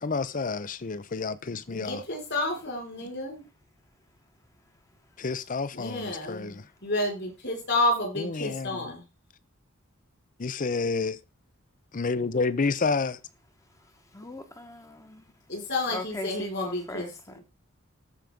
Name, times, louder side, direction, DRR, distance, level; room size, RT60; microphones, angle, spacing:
voice 1, 0.0-2.0 5.2-6.6 8.2-8.9 10.4-11.2 12.0-13.2, left 4 dB, 40° left, 0.6 m, -29 dB
voice 2, 1.7-3.4 5.7-9.0 15.5-17.1, left 2 dB, 55° left, 4.7 m, -30 dB
voice 3, 14.1-15.3 15.9-17.4, left 1 dB, 15° left, 1.1 m, -39 dB
13.5 x 5.1 x 3.6 m
head